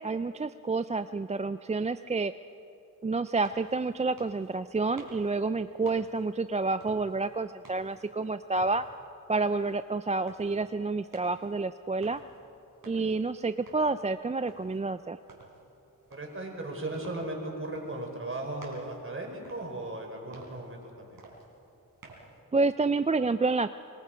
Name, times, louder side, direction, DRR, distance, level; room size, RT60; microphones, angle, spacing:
voice 1, 0.0-2.3 3.0-8.8 9.3-12.2 12.9-15.2 22.5-23.7, right 3 dB, 20° right, 12 dB, 0.4 m, -29 dB
sound 1, 3.2-22.4, right 3 dB, 80° right, 4.2 m, -55 dB
voice 2, 16.1-21.2, right 2 dB, 35° right, 1 dB, 4.8 m, -37 dB
25.5 x 21.0 x 5.1 m, 2.9 s
wide cardioid pair, 80°, 35 cm